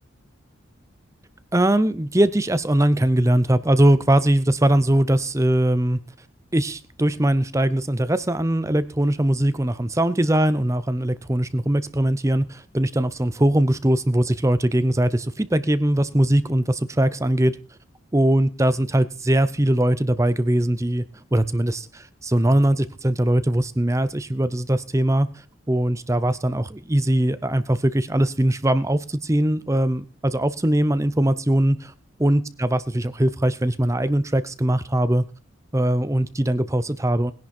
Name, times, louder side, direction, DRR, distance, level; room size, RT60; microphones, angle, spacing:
voice 1, 1.5-6.0 6.5-17.6 18.1-21.0 21.3-31.9 32.2-35.2 35.7-37.3, right 1 dB, 15° right, 14 dB, 0.6 m, -21 dB
19.5 x 10.5 x 4.3 m, 0.36 s
head